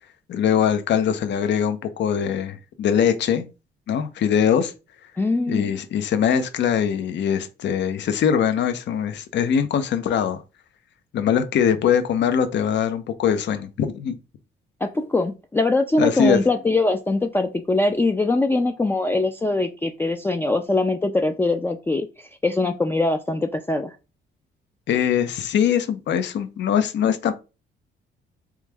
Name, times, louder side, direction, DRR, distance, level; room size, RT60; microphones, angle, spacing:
voice 1, 0.3-3.4 3.9-4.7 5.5-10.4 11.1-14.2 16.0-16.4 24.9-27.3, left 8 dB, 65° left, 0.6 m, -22 dB
voice 2, 5.2-5.7 14.8-23.9, left 2 dB, 10° left, 0.3 m, -22 dB
3.4 x 3.1 x 3.4 m
cardioid pair, 90°, 20 cm